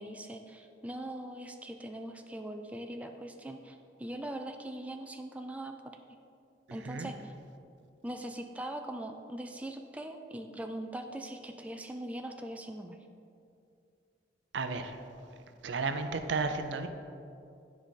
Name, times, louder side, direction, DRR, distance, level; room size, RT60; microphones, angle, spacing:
voice 1, 0.0-5.9 6.7-7.3 8.0-13.0, right 1 dB, 10° right, 4 dB, 0.3 m, -41 dB
voice 2, 6.7-7.1 14.5-15.0 15.6-16.9, right 4 dB, 70° right, 8 dB, 0.5 m, -33 dB
10.0 x 4.8 x 4.0 m, 2.5 s
head